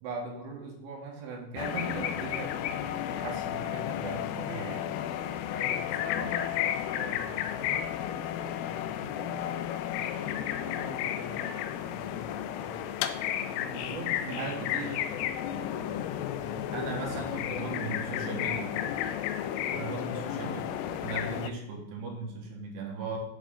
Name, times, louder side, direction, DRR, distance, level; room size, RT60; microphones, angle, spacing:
voice 1, 0.0-4.9 13.7-15.0 16.7-18.7 19.7-20.7 21.0-23.2, right 3 dB, 70° right, 1 dB, 3.0 m, -38 dB
sound 1, 1.6-21.5, left 10 dB, 85° left, 3.2 m, -33 dB
voice 2, 5.5-9.4 9.9-12.8 13.3-16.7 17.5-18.6 19.7-20.4, left 3 dB, 70° left, 1 dB, 3.0 m, -44 dB
8.4 x 7.3 x 3.7 m, 0.87 s
omnidirectional pair, 5.6 m